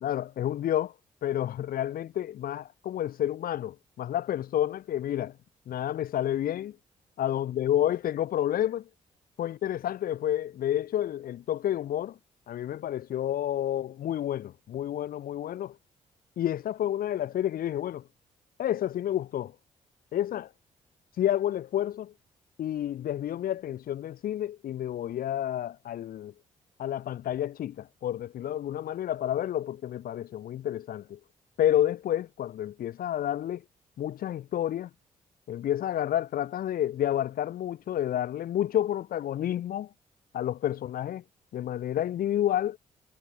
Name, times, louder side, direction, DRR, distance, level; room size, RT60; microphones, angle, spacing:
voice 1, 0.0-0.9 1.2-5.3 5.7-6.8 7.2-8.8 9.4-12.2 12.5-15.7 16.4-18.0 18.6-19.5 20.1-20.5 21.2-22.1 22.6-26.3 26.8-31.2 31.6-33.6 34.0-34.9 35.5-39.9 40.3-41.2 41.5-42.8, left 11 dB, 75° left, 4.0 m, -30 dB
supercardioid pair, 55°, 15 cm